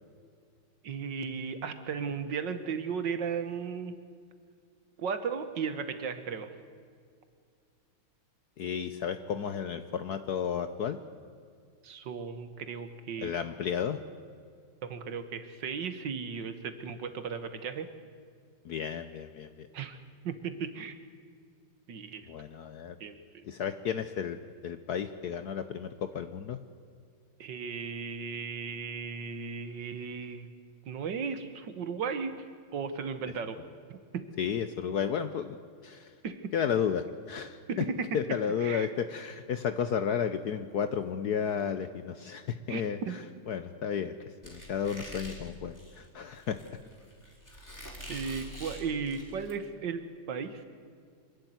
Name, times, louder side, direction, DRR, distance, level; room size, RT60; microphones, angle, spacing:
voice 1, 0.8-3.9 5.0-6.6 11.8-13.4 14.9-17.9 19.7-20.0 20.2-21.0 21.9-22.3 23.0-23.4 27.4-30.5 30.9-32.3 32.7-33.6 33.9-34.3 36.2-36.5 37.7-38.2 38.6-38.9 42.7-43.2 48.1-50.6, right 6 dB, 60° right, 10 dB, 1.8 m, -35 dB
voice 2, 8.6-11.0 13.2-14.0 18.6-19.7 22.3-23.0 23.4-24.4 24.6-26.6 34.4-35.6 35.8-36.1 36.5-37.9 38.1-43.2 43.5-46.6, left 7 dB, 65° left, 10 dB, 1.1 m, -33 dB
Squeak, 44.4-49.5, equal, 10° left, 4.1 m, -45 dB
25.0 x 11.5 x 9.4 m, 2.2 s
omnidirectional pair, 2.3 m